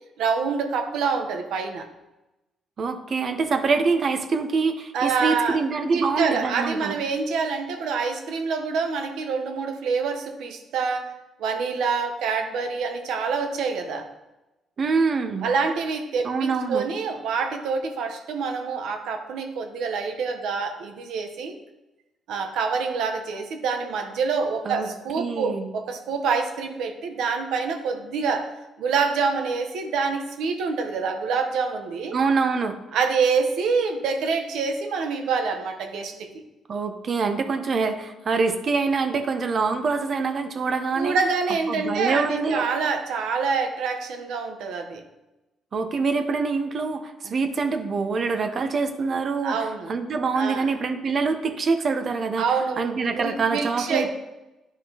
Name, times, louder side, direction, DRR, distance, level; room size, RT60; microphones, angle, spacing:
voice 1, 0.2-1.9 4.9-5.6 5.9-11.1 11.4-14.1 15.4-21.6 22.3-28.5 28.8-32.2 32.9-36.4 41.0-45.0 47.2-47.4 49.4-49.9 50.3-50.7 52.4-54.1, right 5 dB, 85° right, 5 dB, 0.9 m, -26 dB
voice 2, 2.8-6.9 14.8-15.5 16.2-16.9 24.6-24.9 25.2-25.7 32.1-32.8 36.7-41.2 41.7-42.7 45.7-49.6 49.9-52.5 52.8-54.1, right 4 dB, 50° right, 7 dB, 0.7 m, -25 dB
10.0 x 4.9 x 2.9 m, 1.0 s
cardioid pair, 95°, 0 cm